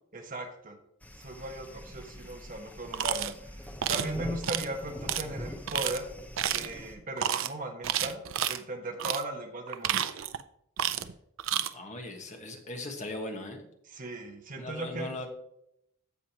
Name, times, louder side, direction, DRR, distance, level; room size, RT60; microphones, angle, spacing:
voice 1, 0.1-0.8 1.2-6.1 6.4-8.2 8.5-10.1 13.9-15.2, right 1 dB, 40° right, 4 dB, 1.2 m, -38 dB
sound 1, 1.0-7.0, equal, 5° left, 0.7 m, -43 dB
sound 2, 2.9-3.3 3.8-4.1 4.4-4.7 5.1-5.2 5.7-6.0 6.4-6.7 7.2-7.5 7.8-8.6 9.0-9.2 9.7-10.4 10.8-11.1 11.4-11.7, right 10 dB, 65° right, 0.5 m, -30 dB
voice 2, 11.7-13.6 14.6-15.3, left 2 dB, 35° left, 3 dB, 1.4 m, -39 dB
15.0 x 5.1 x 2.9 m, 0.75 s
head